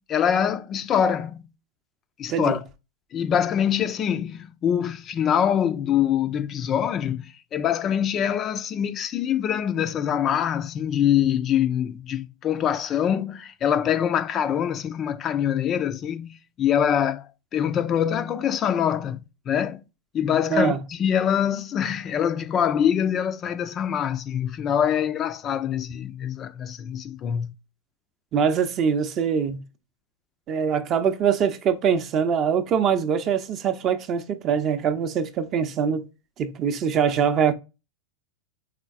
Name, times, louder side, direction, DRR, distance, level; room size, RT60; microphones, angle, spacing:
voice 1, 0.1-1.4 2.2-2.6 3.1-17.3 17.5-19.2 19.5-19.8 20.1-27.5, left 9 dB, 30° left, 0.3 m, -24 dB
voice 2, 28.3-29.6 30.5-36.1 36.4-37.5, right 7 dB, 30° right, 0.6 m, -23 dB
4.9 x 3.9 x 2.3 m
figure-of-eight pair, 90°, 0 cm